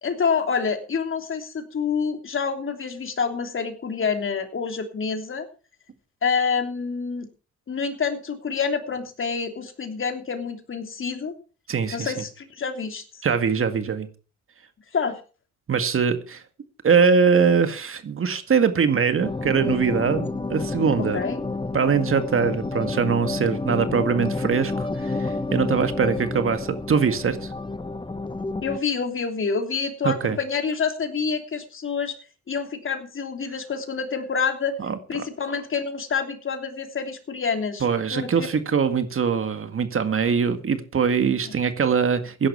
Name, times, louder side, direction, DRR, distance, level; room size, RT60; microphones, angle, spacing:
voice 1, 0.0-5.5 6.2-7.3 7.7-11.3 11.9-13.0 14.9-15.2 21.0-21.4 28.6-32.2 32.5-34.8 35.1-38.3, left 5 dB, 40° left, 3.1 m, -27 dB
voice 2, 11.7-12.1 13.2-14.1 15.7-16.4 16.8-21.2 21.7-27.5 30.0-30.4 34.8-35.3 37.8-42.5, right 6 dB, 45° right, 2.0 m, -22 dB
sound 1, 19.2-28.8, left 3 dB, 15° left, 1.2 m, -29 dB
16.0 x 11.0 x 4.6 m
cardioid pair, 90°, 30 cm